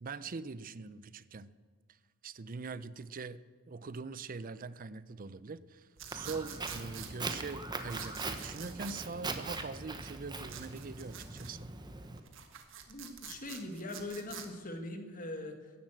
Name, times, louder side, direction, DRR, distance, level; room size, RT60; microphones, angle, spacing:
voice 1, 0.0-1.5 2.2-3.4 3.7-11.7, right 4 dB, 40° right, 0.5 m, -43 dB
sound 1, 6.0-7.1 7.9-9.0 10.5-11.5 12.2-14.5, right 9 dB, 60° right, 1.6 m, -47 dB
Walk footsteps, 6.1-12.2, right 3 dB, 20° right, 1.1 m, -41 dB
voice 2, 12.9-15.7, left 2 dB, 40° left, 1.8 m, -41 dB
15.0 x 11.0 x 7.6 m
head